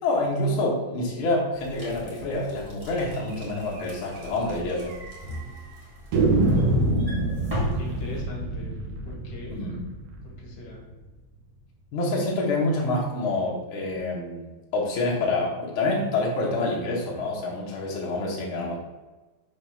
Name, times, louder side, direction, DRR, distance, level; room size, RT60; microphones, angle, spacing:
voice 1, 0.0-4.9 9.5-9.8 11.9-18.8, left 2 dB, 75° left, -4 dB, 1.1 m, -27 dB
sound 1, 1.5-8.2, equal, 65° right, 0.3 m, -38 dB
sound 2, 3.3-3.5 3.8-3.9 4.2-4.3 4.9-5.4 6.1-10.9, right 2 dB, 80° right, 1.5 m, -26 dB
voice 2, 6.2-6.9 7.7-8.8 9.0-9.6 10.2-10.9, left 1 dB, 50° left, -2 dB, 1.3 m, -41 dB
7.5 x 3.6 x 6.3 m, 1.2 s
omnidirectional pair, 4.9 m